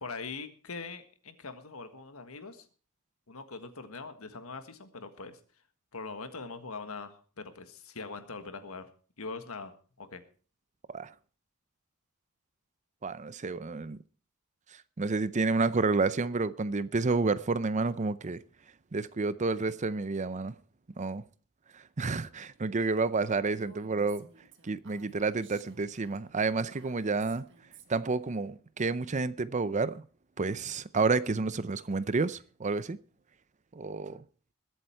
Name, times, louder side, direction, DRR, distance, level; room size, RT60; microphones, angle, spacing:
voice 1, 0.0-2.6 3.3-5.4 5.9-8.9 9.2-9.7 10.0-10.2, left 4 dB, 85° left, 1.6 m, -42 dB
voice 2, 13.0-14.0 14.7-18.4 18.9-20.5 21.0-21.2 21.7-24.3 24.6-27.5 27.9-30.0 30.4-33.0 33.7-34.2, right 3 dB, 35° right, 0.6 m, -30 dB
Female speech woman speaking, 23.5-28.1, right 5 dB, 60° right, 1.6 m, -56 dB
21.0 x 8.0 x 4.5 m
head